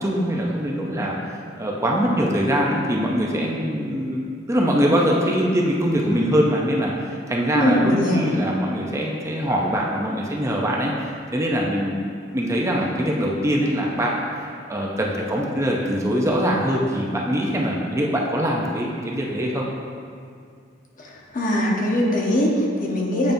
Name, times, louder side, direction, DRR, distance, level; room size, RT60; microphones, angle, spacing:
voice 1, 0.0-4.2 4.5-10.9 11.3-12.0 12.3-19.7, equal, 15° right, -2 dB, 0.5 m, -23 dB
voice 2, 7.5-8.3 21.0-23.3, left 1 dB, 45° left, -2 dB, 0.9 m, -21 dB
9.0 x 5.2 x 2.6 m, 2.2 s
head